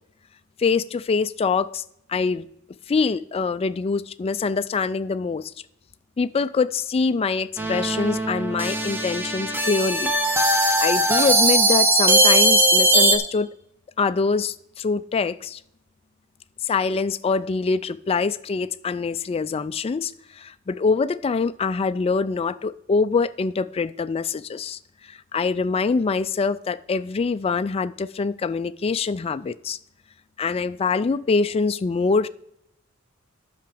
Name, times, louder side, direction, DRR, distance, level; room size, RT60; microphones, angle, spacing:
voice 1, 0.6-1.8 2.1-2.5 2.9-5.5 6.2-10.1 10.6-13.5 14.0-15.6 16.6-29.8 30.4-32.3, left 4 dB, 30° left, 0.3 m, -24 dB
sound 1, 7.6-13.2, right 1 dB, 10° right, 1.2 m, -19 dB
10.5 x 5.8 x 6.9 m
head